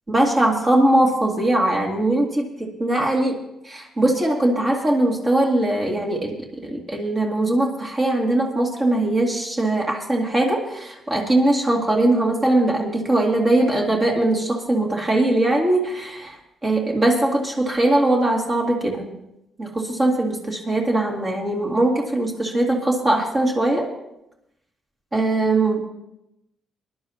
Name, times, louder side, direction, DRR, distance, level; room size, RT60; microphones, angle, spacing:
voice 1, 0.1-3.4 3.6-6.4 6.6-16.4 16.6-19.1 19.6-23.9 25.1-25.8, right 1 dB, 30° right, -2 dB, 2.5 m, -21 dB
21.5 x 11.0 x 2.9 m, 0.85 s
cardioid pair, 90°, 0 cm